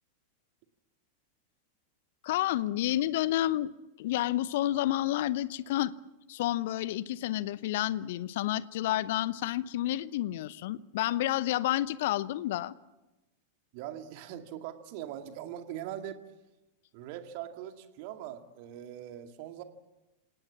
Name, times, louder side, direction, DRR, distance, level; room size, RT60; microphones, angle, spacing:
voice 1, 2.2-5.9 6.3-12.7, left 14 dB, 55° left, 19 dB, 0.8 m, -30 dB
voice 2, 13.7-16.2 16.9-19.6, right 11 dB, 45° right, 6 dB, 2.2 m, -41 dB
27.5 x 18.0 x 7.4 m, 1.1 s
figure-of-eight pair, 90°, 0 cm